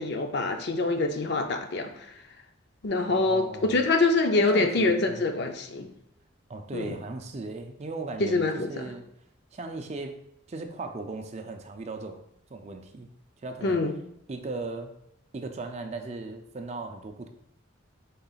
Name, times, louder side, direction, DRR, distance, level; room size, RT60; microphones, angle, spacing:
voice 1, 0.0-2.1 2.8-5.9 6.7-7.0 8.2-8.7 13.6-14.0, left 3 dB, 55° left, 5 dB, 0.5 m, -25 dB
voice 2, 3.1-3.8 4.4-5.2 6.5-9.1 9.5-10.2 10.5-12.2 12.5-13.1 13.4-13.8 14.3-14.9 15.3-17.3, right 3 dB, 35° right, 5 dB, 0.4 m, -37 dB
5.4 x 3.8 x 2.4 m, 0.75 s
head